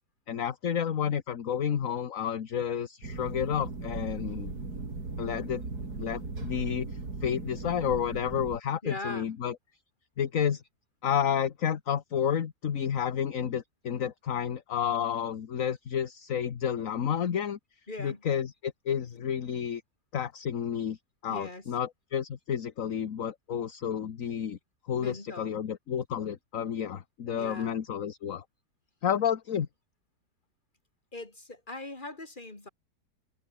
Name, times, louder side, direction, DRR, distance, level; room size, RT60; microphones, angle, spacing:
voice 1, 0.3-4.5 5.2-5.6 6.0-6.9 7.2-9.5 10.2-10.6 11.0-17.6 18.0-19.8 20.1-21.0 21.2-24.6 24.9-28.4 29.0-29.7, left 8 dB, 55° left, 1.5 m, -30 dB
sound 1, 3.0-8.6, right 3 dB, 65° right, 4.4 m, -38 dB
voice 2, 8.8-9.3 17.9-18.2 21.3-21.7 25.0-25.5 27.4-27.8 31.1-32.7, left 2 dB, 25° left, 3.8 m, -40 dB
omnidirectional pair, 1.8 m